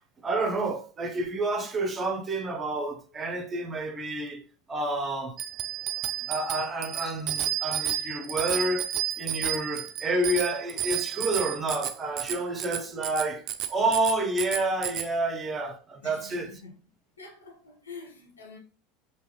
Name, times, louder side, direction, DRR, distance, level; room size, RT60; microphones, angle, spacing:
voice 1, 0.2-4.4 4.7-5.3 6.3-13.4 13.7-16.5, right 2 dB, 25° right, 0.9 m, -29 dB
Bicycle bell, 5.4-15.1, right 11 dB, 45° right, 0.5 m, -32 dB
voice 2, 16.0-16.7 17.2-18.6, left 4 dB, 80° left, 1.2 m, -46 dB
5.2 x 3.0 x 3.1 m
figure-of-eight pair, 80°, 0 cm